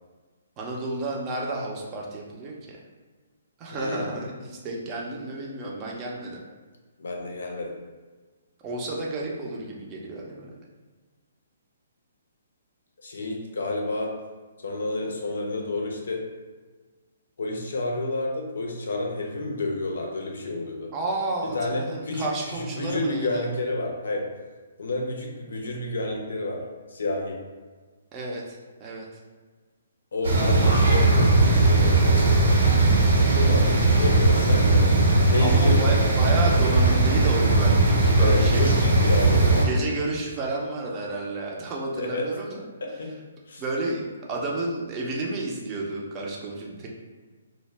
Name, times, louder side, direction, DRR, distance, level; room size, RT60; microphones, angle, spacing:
voice 1, 0.6-2.8 3.6-6.4 8.6-10.6 20.9-23.5 28.1-29.1 35.4-38.8 39.6-42.7 43.6-46.9, right 2 dB, 25° right, -2 dB, 0.5 m, -31 dB
voice 2, 3.7-4.1 7.0-7.8 13.0-14.2 14.6-16.3 17.4-20.9 21.4-24.3 24.8-26.6 26.9-27.4 30.1-32.5 33.1-35.0 35.3-35.9 38.2-39.9 42.0-42.3 42.8-43.2 43.5-43.6, left 2 dB, 75° left, 1 dB, 0.5 m, -30 dB
sound 1, 30.2-39.6, right 2 dB, 70° right, 0.6 m, -19 dB
2.1 x 2.0 x 3.2 m, 1.4 s
hypercardioid pair, 140°, 0 cm